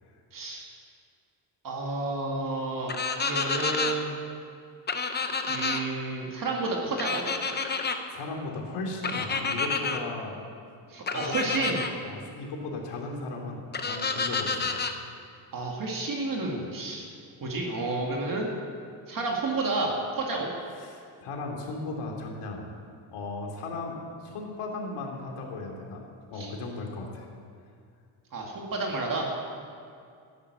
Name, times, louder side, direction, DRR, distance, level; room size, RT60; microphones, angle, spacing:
voice 1, 0.3-0.7 1.6-2.9 3.3-4.1 5.5-7.2 10.9-11.8 15.5-17.0 17.4-18.5 19.1-20.5 26.4-26.5 28.3-29.3, right 3 dB, 40° right, -1 dB, 2.1 m, -30 dB
sound 1, 2.9-3.9 4.9-5.8 7.0-8.0 9.0-10.0 11.1-11.9 13.7-14.9, left 4 dB, 20° left, 0.7 m, -29 dB
voice 2, 8.1-10.4 11.1-14.9 20.8-22.6 23.1-26.0 26.3-27.3, left 3 dB, 85° left, 1 dB, 3.1 m, -36 dB
14.0 x 10.5 x 8.0 m, 2.4 s
cardioid pair, 160°, 50 cm